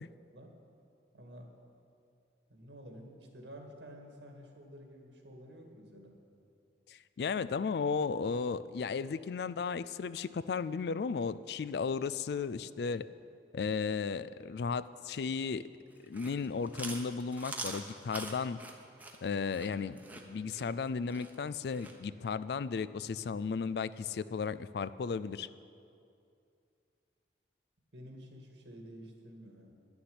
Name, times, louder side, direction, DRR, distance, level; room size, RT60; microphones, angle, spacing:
voice 1, 1.1-1.5 2.5-6.2 27.9-29.7, equal, 85° right, 2 dB, 1.9 m, -51 dB
voice 2, 6.9-13.0 13.5-15.6 16.0-18.6 19.2-25.5, left 5 dB, 65° left, 15 dB, 0.3 m, -35 dB
Chewing mastication, 16.0-22.0, right 2 dB, 10° right, 0.9 m, -44 dB
11.0 x 7.0 x 9.5 m, 2.5 s
head